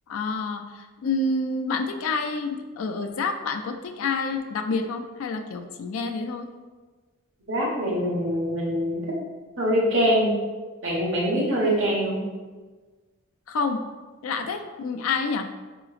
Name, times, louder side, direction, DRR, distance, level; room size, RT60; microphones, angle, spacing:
voice 1, 0.1-6.5 13.5-13.8 14.2-15.5, left 3 dB, 85° left, 6 dB, 0.4 m, -28 dB
voice 2, 7.5-9.0 9.6-10.3 10.8-12.2, equal, 70° right, -5 dB, 1.2 m, -23 dB
4.8 x 2.9 x 2.4 m, 1.3 s
head